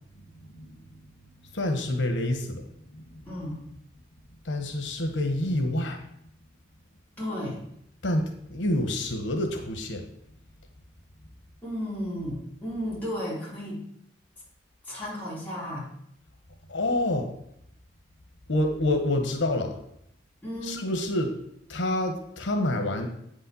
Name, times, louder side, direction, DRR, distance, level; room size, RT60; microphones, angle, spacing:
voice 1, 1.5-2.6 2.9-3.1 4.4-6.0 8.0-10.1 16.7-17.3 18.5-19.8 20.6-21.3 21.7-23.1, left 1 dB, 85° left, 4 dB, 1.2 m, -27 dB
voice 2, 3.3-3.6 7.2-7.6 11.6-13.8 14.9-15.9 20.4-20.8, equal, 10° left, -8 dB, 4.1 m, -33 dB
8.4 x 5.4 x 7.0 m, 0.73 s
head